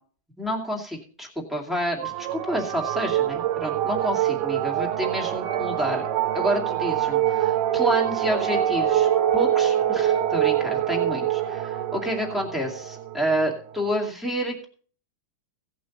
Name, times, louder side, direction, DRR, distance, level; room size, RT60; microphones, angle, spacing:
voice 1, 0.4-6.0 6.3-11.3 11.5-14.6, right 1 dB, ahead, -1 dB, 0.9 m, -29 dB
sound 1, 2.0-13.8, right 11 dB, 75° right, 1.9 m, -25 dB
16.5 x 8.4 x 4.1 m, 0.43 s
omnidirectional pair, 4.5 m